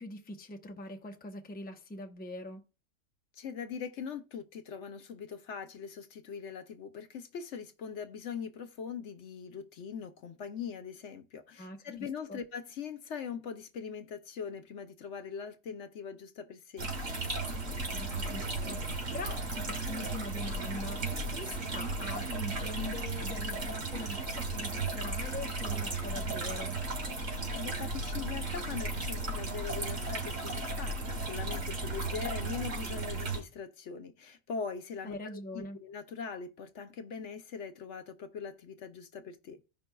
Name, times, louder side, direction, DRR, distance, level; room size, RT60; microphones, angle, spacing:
voice 1, 0.0-2.7 11.6-12.4 17.9-26.8 35.0-35.8, left 1 dB, 10° left, 0.6 m, -43 dB
voice 2, 3.4-16.9 27.5-35.2 35.5-39.6, left 6 dB, 70° left, 1.0 m, -41 dB
sound 1, 16.8-33.4, right 2 dB, 85° right, 2.5 m, -35 dB
16.0 x 5.3 x 2.3 m
omnidirectional pair, 1.3 m